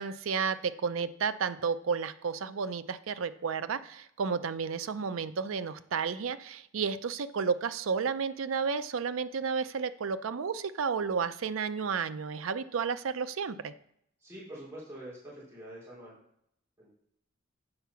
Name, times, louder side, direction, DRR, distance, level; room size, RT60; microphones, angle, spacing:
voice 1, 0.0-13.7, right 5 dB, 80° right, 13 dB, 0.5 m, -32 dB
voice 2, 14.2-16.1 16.8-16.9, right 1 dB, 15° right, -8 dB, 3.0 m, -45 dB
7.8 x 4.6 x 5.7 m, 0.72 s
head